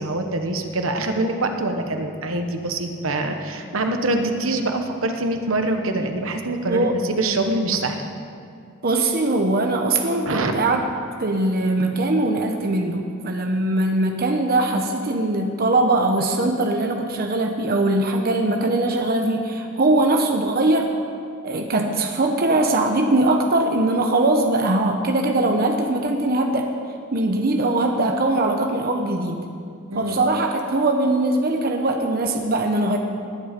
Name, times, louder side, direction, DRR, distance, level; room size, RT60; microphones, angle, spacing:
voice 1, 0.0-8.0 10.3-10.5 29.9-30.2, right 2 dB, 75° right, 5 dB, 1.2 m, -24 dB
voice 2, 8.8-10.8 11.2-21.0 21.4-26.7 27.1-29.4 29.9-33.0, right 2 dB, 45° right, 3 dB, 0.9 m, -21 dB
19.0 x 10.0 x 5.2 m, 2.4 s
head